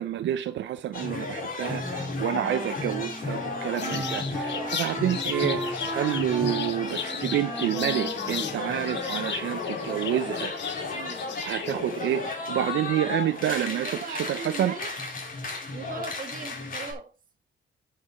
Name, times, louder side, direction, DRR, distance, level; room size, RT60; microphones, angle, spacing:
voice 1, 0.0-10.5 11.4-14.7, right 11 dB, 80° right, 0.7 m, -29 dB
sound 1, 0.9-16.9, left 3 dB, 45° left, 3.6 m, -33 dB
Wind instrument woodwind instrument, 1.8-9.3, right 1 dB, 10° right, 0.6 m, -38 dB
sound 2, 3.8-8.6 8.9-11.7, left 8 dB, 70° left, 1.2 m, -35 dB
voice 2, 4.5-4.8 10.9-11.2 13.5-14.9 15.7-17.1, right 6 dB, 45° right, 1.6 m, -39 dB
9.9 x 5.8 x 4.3 m
cardioid pair, 105°, 19 cm